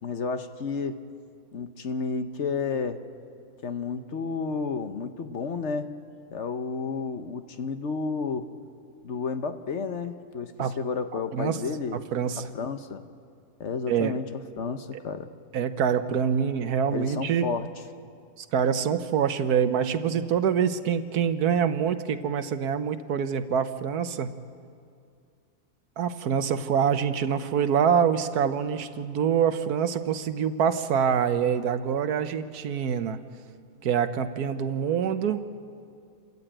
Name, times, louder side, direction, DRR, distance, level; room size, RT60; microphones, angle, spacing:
voice 1, 0.0-1.0 1.5-3.0 3.6-5.9 6.3-8.5 9.0-12.0 12.4-13.0 13.6-15.3 16.9-17.7, left 5 dB, 55° left, 9 dB, 1.1 m, -31 dB
voice 2, 11.3-11.6 11.9-12.5 13.9-14.1 15.5-17.5 18.4-24.3 26.0-33.2 33.8-35.4, right 7 dB, 85° right, 11 dB, 1.4 m, -25 dB
28.0 x 13.5 x 8.9 m, 2.3 s
omnidirectional pair, 1.6 m